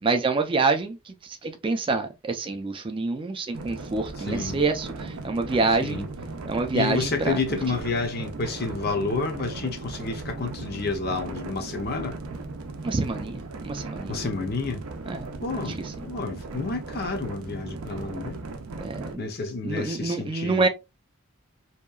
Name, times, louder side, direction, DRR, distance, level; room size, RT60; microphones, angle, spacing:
voice 1, 0.0-6.1 6.5-7.6 12.8-14.2 15.1-15.3 15.6-15.9 18.8-19.3 19.6-20.7, right 3 dB, 25° right, 0.4 m, -27 dB
sound 1, 3.5-19.2, right 3 dB, 80° right, 0.5 m, -37 dB
voice 2, 4.3-4.6 5.8-6.1 6.7-12.1 14.1-14.8 15.4-15.8 16.0-18.4 19.2-20.6, left 3 dB, 45° left, 0.5 m, -30 dB
2.8 x 2.3 x 2.3 m
head